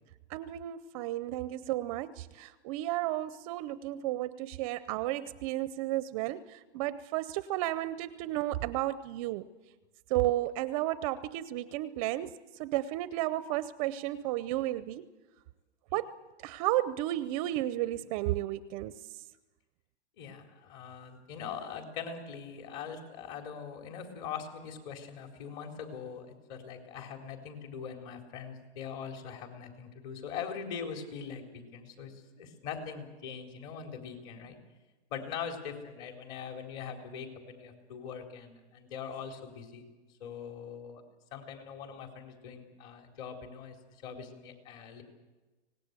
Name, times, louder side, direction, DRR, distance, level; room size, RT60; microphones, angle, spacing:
voice 1, 0.3-9.4 10.1-15.1 15.9-16.1 16.4-19.0, right 15 dB, 30° right, 15 dB, 0.6 m, -33 dB
voice 2, 20.2-34.6 35.1-39.8 40.2-41.0 41.3-43.8 44.0-45.0, left 7 dB, 40° left, 4 dB, 4.2 m, -42 dB
25.0 x 19.0 x 8.2 m, 1.2 s
hypercardioid pair, 140°, 34 cm